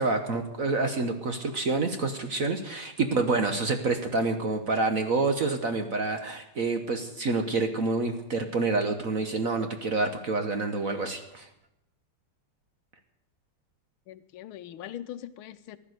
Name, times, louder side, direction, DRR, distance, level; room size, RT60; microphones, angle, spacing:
voice 1, 0.0-11.5, right 3 dB, 50° right, 7 dB, 1.2 m, -28 dB
voice 2, 3.0-3.3 14.1-15.8, left 11 dB, 85° left, 13 dB, 1.6 m, -41 dB
15.0 x 11.0 x 7.9 m, 0.83 s
omnidirectional pair, 2.3 m